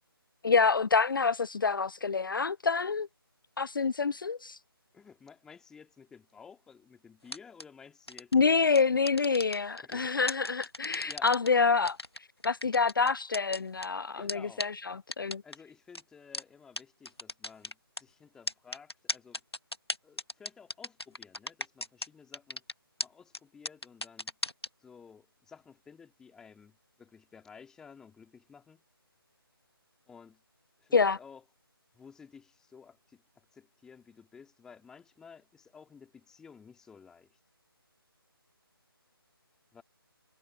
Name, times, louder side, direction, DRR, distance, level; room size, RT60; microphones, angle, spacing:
voice 1, 0.4-3.1 3.6-4.6 8.3-12.0 12.4-15.4 30.9-31.2, left 5 dB, 60° left, 0.4 m, -27 dB
voice 2, 4.9-8.3 9.8-10.1 11.1-11.3 14.1-14.7 15.4-19.4 20.0-22.6 23.0-24.3 24.8-28.8 30.1-30.4 30.8-31.4 31.9-37.4 39.7-39.8, left 6 dB, 5° left, 2.5 m, -54 dB
sound 1, 7.3-7.6 8.1-8.3 8.7-9.9 10.3-11.5 11.9-13.9 14.3-14.4 14.6-14.7 15.1-15.6 15.9-16.0 16.3-16.4 16.8-16.9 17.1-18.0 18.5-22.1 22.3-22.7 23.0-23.1 23.3-23.4 23.7-24.7, left 1 dB, 90° left, 1.7 m, -36 dB
figure-of-eight pair, 155°, 13 cm